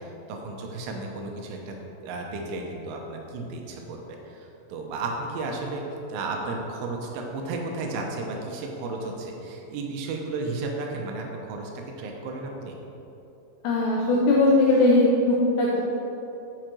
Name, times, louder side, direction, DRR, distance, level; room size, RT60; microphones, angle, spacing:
voice 1, 0.0-1.8 2.0-12.8, right 3 dB, 80° right, 1 dB, 3.1 m, -33 dB
voice 2, 13.6-15.8, left 2 dB, 85° left, -3 dB, 2.4 m, -20 dB
6.5 x 6.4 x 6.0 m, 3.0 s
omnidirectional pair, 5.8 m